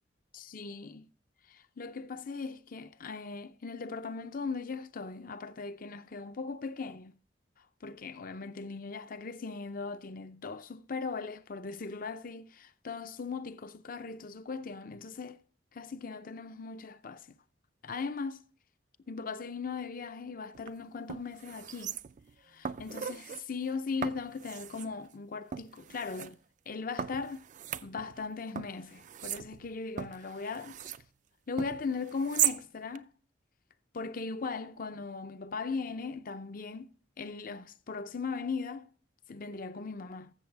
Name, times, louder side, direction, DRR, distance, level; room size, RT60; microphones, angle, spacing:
voice 1, 0.3-1.1 1.5-7.1 7.8-15.4 15.7-17.3 17.8-18.4 19.1-22.0 22.5-26.4 26.7-27.4 27.8-30.9 31.5-33.1 33.9-38.9 39.3-40.3, left 4 dB, 50° left, 0.6 m, -38 dB
sound 1, 20.5-20.7 21.1-22.3 22.6-23.4 24.0-24.9 25.5-26.3 27.0-28.3 28.6-31.0 31.6-32.6 32.9-33.0, right 10 dB, 45° right, 0.4 m, -37 dB
14.0 x 7.0 x 3.4 m
head